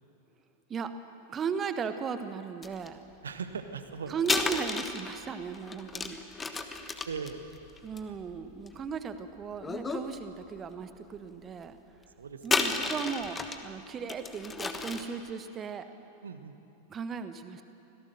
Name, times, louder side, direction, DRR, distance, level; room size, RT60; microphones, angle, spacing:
voice 1, 1.3-3.0 4.1-6.2 7.8-11.8 12.4-13.4 13.6-15.9 16.9-17.6, right 6 dB, 25° right, 10 dB, 1.2 m, -36 dB
sound 1, 2.6-2.9 4.2-9.0 9.5-10.1 10.6-10.7 12.4-13.7 14.1-15.2, left 4 dB, 15° left, 1.3 m, -32 dB
voice 2, 3.2-4.2 6.5-7.4 12.2-13.0 16.2-16.5, right 5 dB, 70° right, 9 dB, 1.3 m, -40 dB
25.5 x 17.0 x 6.6 m, 2.9 s
figure-of-eight pair, 90°, 0 cm